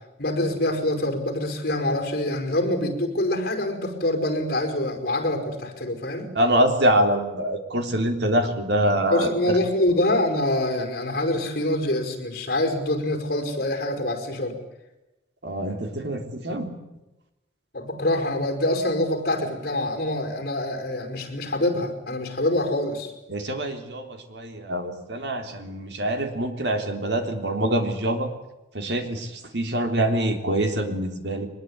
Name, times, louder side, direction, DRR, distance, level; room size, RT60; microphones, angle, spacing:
voice 1, 0.2-6.3 9.1-14.6 17.7-23.1, left 1 dB, 55° left, 6 dB, 5.2 m, -25 dB
voice 2, 6.4-9.3 15.4-16.7 23.3-28.3 28.7-31.5, right 1 dB, 75° right, 5 dB, 3.6 m, -25 dB
23.5 x 21.0 x 9.6 m, 0.97 s
head